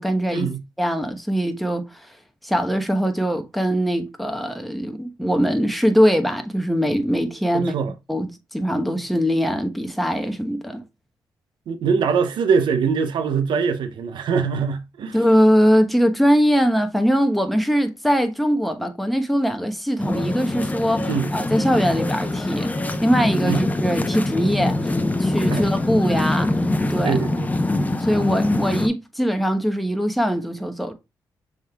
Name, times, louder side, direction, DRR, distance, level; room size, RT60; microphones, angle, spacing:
voice 1, 0.0-0.5 0.8-2.1 2.4-7.7 8.1-10.8 15.1-22.7 23.0-24.9 25.2-26.6 26.9-27.2 28.0-30.9, equal, ahead, 1.0 m, -21 dB
voice 2, 7.5-7.9 11.7-15.2 21.1-21.3 23.5-23.6 25.5-25.7 27.0-27.5, right 6 dB, 75° right, 0.7 m, -23 dB
sound 1, 20.0-28.9, left 2 dB, 20° left, 0.7 m, -23 dB
6.2 x 3.7 x 2.3 m
cardioid pair, 60°, 8 cm